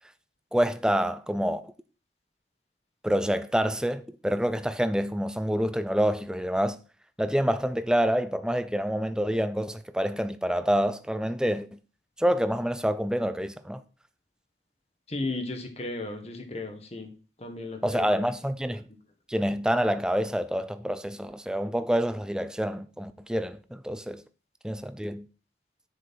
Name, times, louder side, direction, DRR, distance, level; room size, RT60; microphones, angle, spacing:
voice 1, 0.5-1.7 3.0-6.8 7.2-11.8 12.2-13.8 17.8-18.9 19.3-24.2 24.6-25.3, equal, 5° right, 0.4 m, -27 dB
voice 2, 15.1-17.1 17.4-18.2, left 2 dB, 35° left, 1.6 m, -35 dB
7.7 x 6.4 x 4.4 m
head